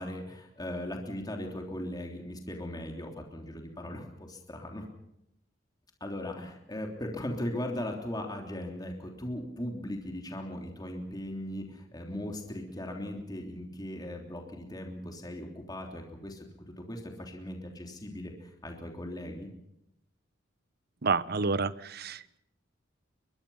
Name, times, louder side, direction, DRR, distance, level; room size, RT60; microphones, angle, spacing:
voice 1, 0.0-4.8 6.0-16.5 16.8-19.5, left 1 dB, 20° left, 2 dB, 3.3 m, -38 dB
voice 2, 21.0-22.4, right 4 dB, 55° right, 16 dB, 0.9 m, -29 dB
23.5 x 22.5 x 5.7 m, 0.81 s
head